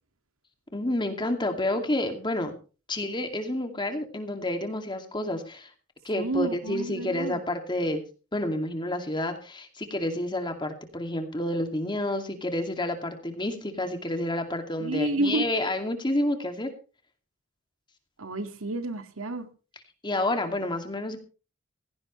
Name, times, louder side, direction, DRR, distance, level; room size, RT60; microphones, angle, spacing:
voice 1, 0.7-2.5 2.9-5.7 6.0-8.0 8.3-16.7 20.0-21.2, left 1 dB, 20° left, 6 dB, 2.4 m, -29 dB
voice 2, 6.1-7.4 14.8-15.5 18.2-19.5, right 2 dB, 90° right, 8 dB, 2.0 m, -30 dB
16.5 x 16.5 x 3.2 m, 0.35 s
head